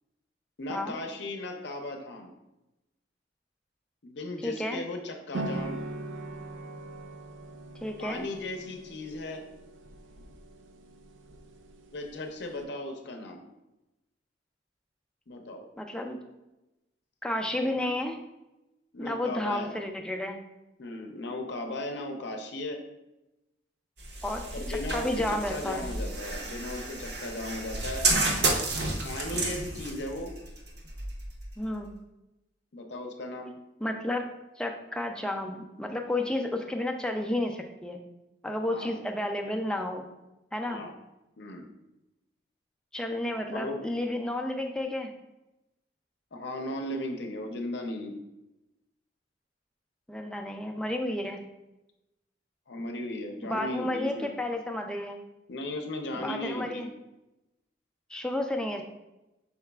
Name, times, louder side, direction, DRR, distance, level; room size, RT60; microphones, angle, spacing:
voice 1, 0.6-2.3 4.0-5.8 8.0-9.4 11.9-13.4 15.3-15.6 17.7-17.9 18.9-19.7 20.8-22.8 24.5-28.1 29.0-30.3 32.7-33.6 38.7-39.0 40.7-40.9 41.4-41.7 43.5-43.8 46.3-48.2 52.7-54.3 55.5-56.8, left 2 dB, 60° left, 4 dB, 0.6 m, -36 dB
voice 2, 4.4-4.8 7.8-8.3 15.8-16.2 17.2-18.2 19.0-20.4 24.2-24.4 24.7-25.9 31.6-31.9 33.8-34.2 34.6-38.0 38.4-40.0 40.5-40.8 42.9-45.1 50.1-51.4 53.4-55.2 56.1-56.9 58.1-58.8, left 1 dB, 5° left, 3 dB, 0.4 m, -31 dB
sound 1, 5.3-12.6, right 2 dB, 85° right, 0.5 m, -41 dB
sound 2, 24.0-31.9, right 2 dB, 60° right, 0.8 m, -31 dB
5.6 x 4.0 x 2.3 m, 0.96 s
head